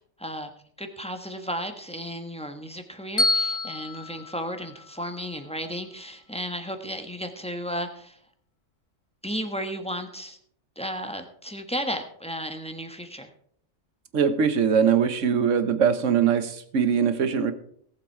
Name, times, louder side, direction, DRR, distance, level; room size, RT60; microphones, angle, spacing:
voice 1, 0.2-0.5 0.8-8.2 9.2-10.4 10.8-13.3, equal, 5° left, 6 dB, 1.1 m, -34 dB
Bell, 3.2-5.4, left 2 dB, 60° left, 2.4 m, -28 dB
voice 2, 14.1-17.5, right 7 dB, 75° right, 11 dB, 1.4 m, -22 dB
18.0 x 7.5 x 4.6 m, 0.62 s
omnidirectional pair, 1.3 m